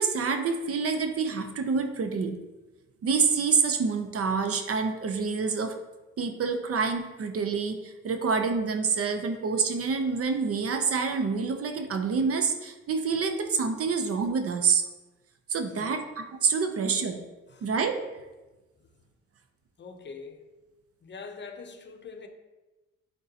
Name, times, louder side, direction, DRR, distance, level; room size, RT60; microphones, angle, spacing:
voice 1, 0.0-2.4 3.0-5.7 6.2-14.8 15.5-17.2 17.6-18.0, right 5 dB, 50° right, 0.7 m, -27 dB
voice 2, 15.8-16.1 17.5-17.7 18.8-18.9 19.8-20.4 21.0-22.3, left 5 dB, 40° left, 0.8 m, -44 dB
9.5 x 3.7 x 2.9 m
cardioid pair, 90°, 30 cm